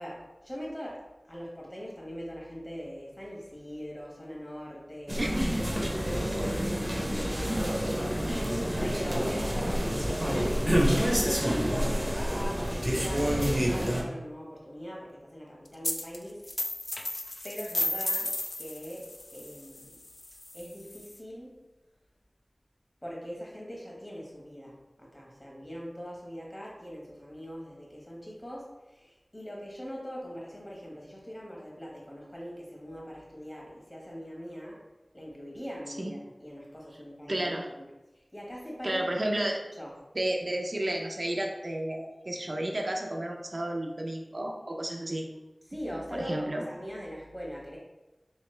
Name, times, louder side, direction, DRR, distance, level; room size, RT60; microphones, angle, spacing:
voice 1, 0.0-5.3 5.5-10.2 11.5-16.4 17.4-20.0 20.5-21.6 23.0-34.8 35.1-37.9 38.3-39.1 39.8-39.9 45.7-47.8, equal, 30° left, -3 dB, 1.2 m, -42 dB
sound 1, 5.1-14.0, equal, 15° right, 0.6 m, -28 dB
sound 2, 15.8-16.2 16.4-21.2, left 2 dB, 60° left, 0.3 m, -34 dB
voice 2, 37.3-37.7 38.8-39.6 40.1-45.3 46.1-46.6, right 1 dB, 55° right, 1 dB, 0.4 m, -32 dB
3.1 x 2.9 x 3.1 m, 1.0 s
wide cardioid pair, 45°, 0 cm